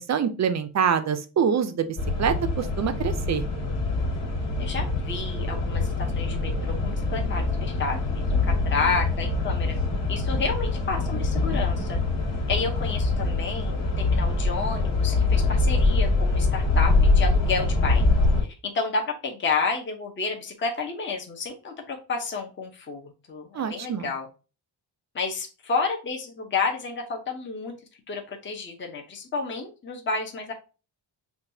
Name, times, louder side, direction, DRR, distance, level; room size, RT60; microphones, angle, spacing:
voice 1, 0.0-3.5 23.5-24.1, right 7 dB, 40° right, 10 dB, 0.5 m, -25 dB
sound 1, 2.0-18.4, left 3 dB, 85° left, 1.8 m, -24 dB
voice 2, 4.6-9.8 10.1-12.0 12.5-18.0 18.4-24.3 25.1-27.8 28.1-30.5, left 4 dB, 25° left, 1 dB, 0.7 m, -30 dB
5.8 x 2.3 x 2.7 m, 0.33 s
wide cardioid pair, 150°, 44 cm